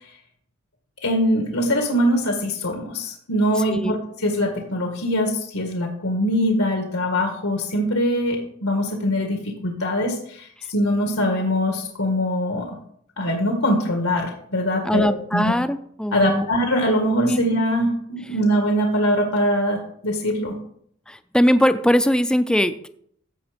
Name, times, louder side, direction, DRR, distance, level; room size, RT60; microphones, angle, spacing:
voice 1, 1.0-12.8 13.2-15.5 16.1-20.5, equal, 90° left, 3 dB, 1.7 m, -22 dB
voice 2, 14.9-16.5 17.2-17.4 21.1-22.9, equal, 5° left, 10 dB, 0.4 m, -20 dB
15.0 x 5.7 x 5.1 m, 0.66 s
head